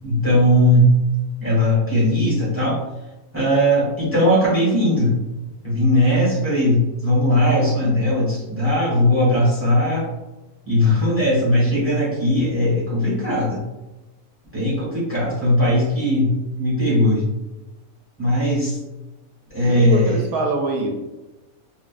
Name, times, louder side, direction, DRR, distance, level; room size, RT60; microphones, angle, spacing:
voice 1, 0.0-1.0 1.4-2.8 3.3-5.2 5.6-10.1 10.6-13.6 14.5-17.2 18.2-18.8 19.5-20.2, left 1 dB, 10° right, -8 dB, 1.1 m, -18 dB
voice 2, 19.6-21.0, right 3 dB, 80° right, 1 dB, 1.1 m, -24 dB
2.9 x 2.3 x 2.4 m, 1.1 s
omnidirectional pair, 1.5 m